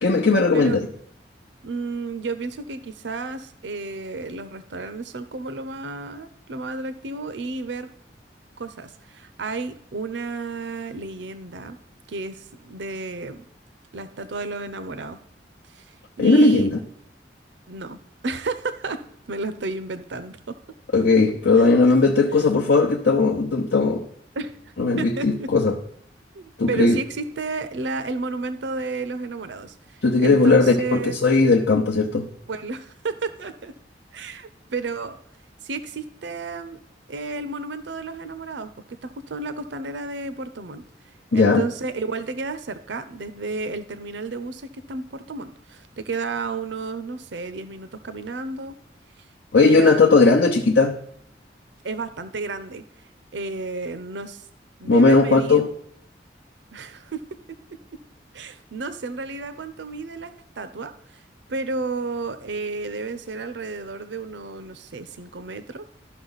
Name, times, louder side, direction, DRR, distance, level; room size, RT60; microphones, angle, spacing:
voice 1, 0.0-0.9 16.2-16.8 20.9-24.0 24.8-25.7 26.6-27.0 30.0-32.3 41.3-41.6 49.5-51.0 54.9-55.7, left 3 dB, 85° left, 0.8 m, -17 dB
voice 2, 1.6-7.9 8.6-11.8 12.1-13.5 13.9-15.2 15.7-16.7 17.7-20.6 21.5-21.7 24.4-24.5 25.0-25.5 26.3-31.2 32.5-33.7 34.1-35.2 35.6-36.8 37.1-38.7 39.0-40.8 41.3-48.7 49.5-50.2 51.8-54.5 54.8-55.6 56.7-57.2 58.3-61.2 61.5-65.8, right 3 dB, 90° right, 0.6 m, -32 dB
13.0 x 5.8 x 4.0 m
head